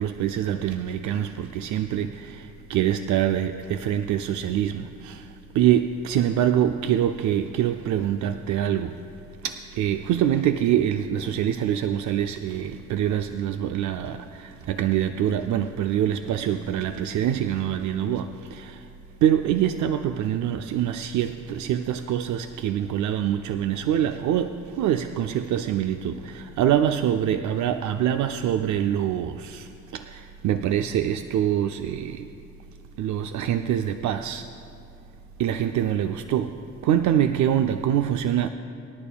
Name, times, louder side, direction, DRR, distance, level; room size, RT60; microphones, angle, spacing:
voice 1, 0.0-9.0 9.4-18.9 19.2-32.3 33.0-34.5 35.4-38.5, right 10 dB, 70° right, 0.5 m, -25 dB
25.0 x 10.5 x 2.3 m
cardioid pair, 90°, 30 cm